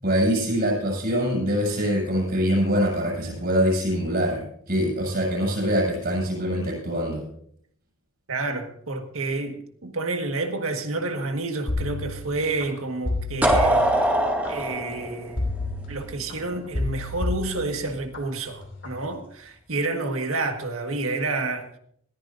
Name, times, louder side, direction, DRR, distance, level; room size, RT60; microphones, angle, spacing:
voice 1, 0.0-4.4 4.7-7.2, equal, 50° right, 6.5 m, -24 dB
voice 2, 8.3-13.9 14.5-15.5 15.9-21.7, right 3 dB, 80° right, 1.6 m, -29 dB
sound 1, 11.7-12.6 13.0-14.5 15.4-16.3 16.7-18.2 18.6-19.0, left 2 dB, 60° left, 2.8 m, -30 dB
sound 2, 13.4-16.3, right 1 dB, 10° right, 2.1 m, -22 dB
20.5 x 14.5 x 2.6 m
head